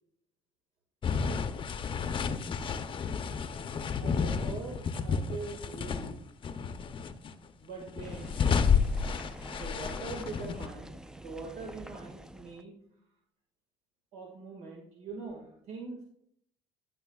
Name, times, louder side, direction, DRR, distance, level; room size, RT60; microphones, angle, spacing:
sound 1, 1.0-6.1 6.4-7.3 7.8-10.7, left 6 dB, 35° left, 0.7 m, -31 dB
voice 1, 4.0-6.1 7.6-8.4 9.5-12.8 14.1-16.0, right 4 dB, 75° right, -1 dB, 2.0 m, -43 dB
sound 2, 8.0-12.6, right 1 dB, 5° right, 0.4 m, -47 dB
15.0 x 6.3 x 2.4 m, 0.71 s
cardioid pair, 105°, 14 cm